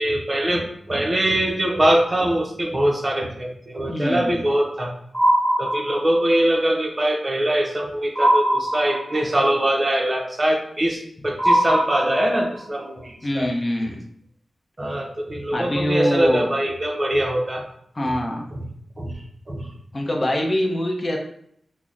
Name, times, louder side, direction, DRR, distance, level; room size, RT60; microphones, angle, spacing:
voice 1, 0.0-4.9 5.6-13.5 14.8-17.6 18.0-18.1 18.5-18.6 19.0-19.1 19.5-19.7, right 1 dB, 30° right, 1 dB, 0.6 m, -22 dB
voice 2, 3.9-4.3 13.2-14.0 15.5-16.5 17.9-18.5 19.9-21.2, left 1 dB, 30° left, 1 dB, 0.6 m, -24 dB
sound 1, 5.1-6.4 8.2-9.4 11.4-12.6, right 1 dB, ahead, 1.0 m, -21 dB
5.5 x 2.1 x 2.4 m, 0.68 s
wide cardioid pair, 100°, 0 cm